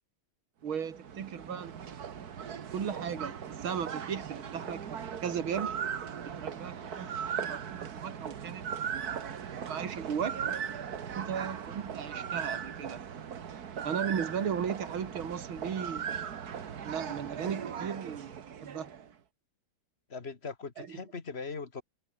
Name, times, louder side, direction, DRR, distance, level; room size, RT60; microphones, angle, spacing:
voice 1, 0.6-1.7 2.7-5.8 6.2-10.4 11.2-13.0 13.8-16.0 16.8-18.3 18.6-19.0 20.8-21.0, right 7 dB, 85° right, 2.8 m, -36 dB
sound 1, 0.7-19.1, right 7 dB, 50° right, 1.8 m, -38 dB
voice 2, 20.1-21.8, left 4 dB, 30° left, 1.9 m, -40 dB
omnidirectional pair, 2.2 m